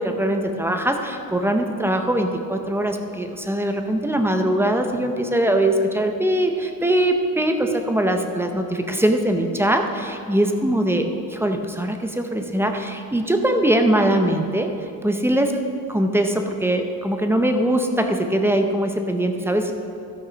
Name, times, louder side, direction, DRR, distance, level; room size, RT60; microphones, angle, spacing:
voice 1, 0.0-14.7 15.0-15.6 15.9-19.7, right 1 dB, 5° right, 5 dB, 0.5 m, -21 dB
13.0 x 5.9 x 5.1 m, 2.6 s
wide cardioid pair, 165°, 36 cm